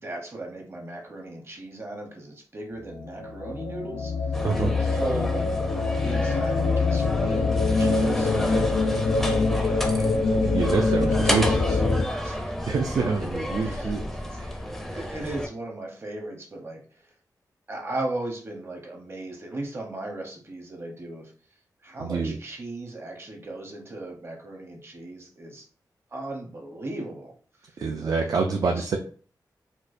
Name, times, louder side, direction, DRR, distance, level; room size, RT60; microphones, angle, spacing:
voice 1, 0.0-5.6 6.0-8.7 9.2-11.6 12.2-12.4 13.2-13.3 13.6-14.0 14.3-14.4 14.9-17.1 17.7-21.3 21.8-25.7 26.1-27.3 27.6-28.2 28.6-28.9, right 2 dB, 35° right, 1 dB, 0.8 m, -37 dB
sound 1, 2.9-12.1, left 3 dB, 80° left, 0.5 m, -24 dB
sound 2, 4.3-15.5, equal, 5° left, 0.5 m, -31 dB
voice 2, 4.4-4.7 10.4-11.8 12.6-14.1 14.4-14.6 22.0-22.4 27.8-29.0, right 4 dB, 60° right, 3 dB, 0.4 m, -26 dB
4.4 x 2.2 x 2.5 m, 0.43 s
wide cardioid pair, 120°, 7 cm